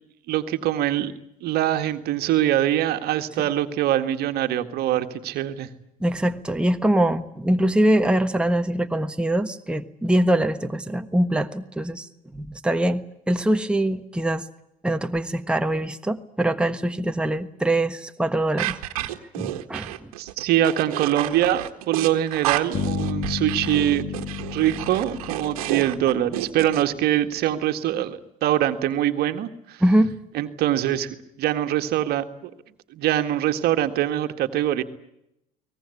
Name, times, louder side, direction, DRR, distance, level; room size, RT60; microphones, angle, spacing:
voice 1, 0.3-1.1 1.4-5.7 20.2-24.1 24.5-29.8 30.3-32.5 32.9-34.8, right 12 dB, 60° right, 8 dB, 1.8 m, -23 dB
voice 2, 6.0-12.1 12.3-14.4 14.8-19.1 19.4-19.9 29.8-30.1, right 1 dB, 5° right, 6 dB, 1.4 m, -23 dB
sound 1, 18.6-26.8, right 15 dB, 85° right, 1.6 m, -31 dB
sound 2, 22.7-26.7, left 6 dB, 45° left, 2.4 m, -32 dB
23.0 x 19.0 x 9.9 m, 0.81 s
hypercardioid pair, 75°, 18 cm